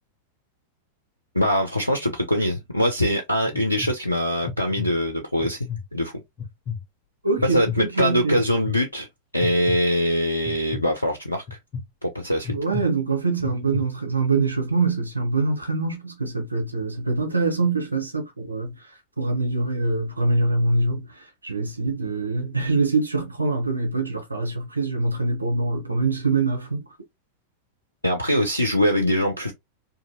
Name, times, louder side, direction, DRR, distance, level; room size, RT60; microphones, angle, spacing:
voice 1, 1.3-6.1 7.5-9.1 9.3-11.4 12.0-12.5 28.0-29.5, equal, 85° left, 0.4 m, -23 dB
sound 1, 2.5-2.9 3.5-3.9 4.4-4.9 5.4-5.8 6.4-6.8 7.4-7.8 8.4-8.7 9.4-9.8 10.5-10.8 11.5-11.8 12.4-12.8 13.4-13.8, left 7 dB, 35° left, 0.9 m, -31 dB
voice 2, 7.2-8.4 12.5-18.7 19.2-21.1 21.4-26.8, right 3 dB, 85° right, 0.7 m, -24 dB
2.7 x 2.5 x 2.5 m
figure-of-eight pair, 90°, 0 cm